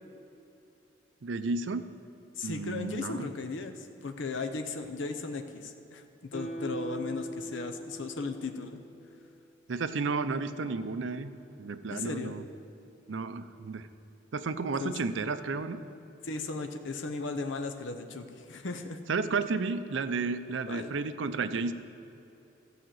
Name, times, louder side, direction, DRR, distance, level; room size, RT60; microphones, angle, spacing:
voice 1, 1.2-1.9 2.4-3.3 9.7-11.3 11.6-12.4 13.1-13.9 14.3-15.8 19.1-21.7, right 4 dB, 75° right, 11 dB, 0.5 m, -32 dB
voice 2, 2.4-6.0 6.3-8.8 11.9-12.3 14.8-15.0 16.2-19.0 20.7-20.9, left 3 dB, 75° left, 6 dB, 0.7 m, -36 dB
Guitar, 6.3-9.6 9.9-10.0, equal, 40° left, 0.8 m, -41 dB
13.5 x 5.0 x 7.7 m, 2.9 s
head